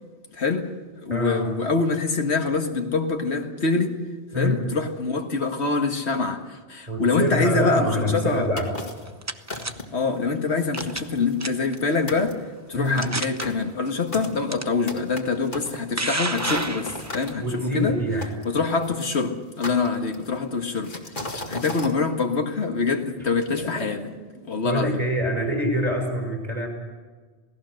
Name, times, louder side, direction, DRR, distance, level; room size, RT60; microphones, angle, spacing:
voice 1, 0.3-0.8 1.0-4.0 4.4-8.5 9.9-12.4 12.7-18.0 18.5-24.0 24.5-25.0, left 4 dB, 80° left, 2.0 m, -25 dB
voice 2, 1.1-1.5 4.3-4.7 6.9-8.7 12.7-13.1 17.4-18.3 23.6-24.0 24.6-26.7, equal, 35° right, 5.9 m, -25 dB
sound 1, 8.6-9.1 9.5-10.0 10.5-10.6 10.8-11.8 12.1-12.3 12.8-17.3 18.2-19.1 19.6-20.4 20.8-21.9, left 2 dB, 50° left, 2.3 m, -36 dB
Loading and firing off a riffle, 8.8-9.7 10.7-11.1 11.4-11.8 12.4-12.5 13.0-13.4 14.5-14.6 15.6-17.3, right 2 dB, 15° right, 0.8 m, -29 dB
28.5 x 18.0 x 6.5 m
omnidirectional pair, 1.1 m